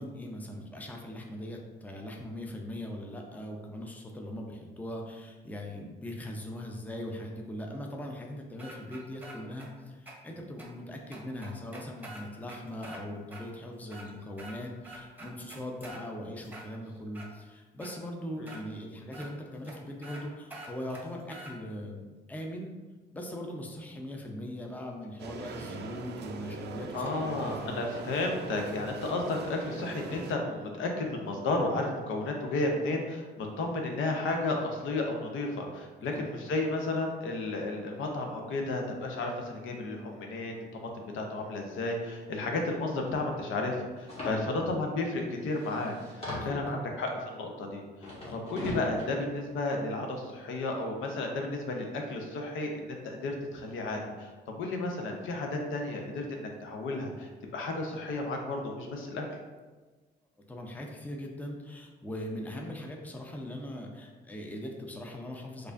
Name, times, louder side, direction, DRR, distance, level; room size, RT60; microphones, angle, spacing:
voice 1, 0.0-22.8 23.1-27.7 36.1-36.2 44.2-44.7 46.4-46.8 48.2-48.3 60.5-65.7, left 1 dB, 10° left, 1 dB, 0.5 m, -40 dB
sound 1, 8.6-9.7 10.1-10.2 10.6-10.7 11.1-13.0 13.3-13.4 13.8-14.6 14.8-16.0 16.4-17.3 17.8-17.9 18.5-18.6 19.1-19.3 19.6-19.7 20.0-20.2 20.5-21.5, right 1 dB, 10° right, 0.8 m, -46 dB
sound 2, 25.2-30.3, right 5 dB, 60° right, 0.4 m, -41 dB
voice 2, 26.9-59.3, left 2 dB, 80° left, 2 dB, 0.6 m, -33 dB
sound 3, 44.1-44.4 45.2-45.3 45.5-46.7 48.0-49.0, left 1 dB, 30° left, 1.3 m, -38 dB
4.7 x 2.5 x 2.5 m, 1.3 s
cardioid pair, 90°, 20 cm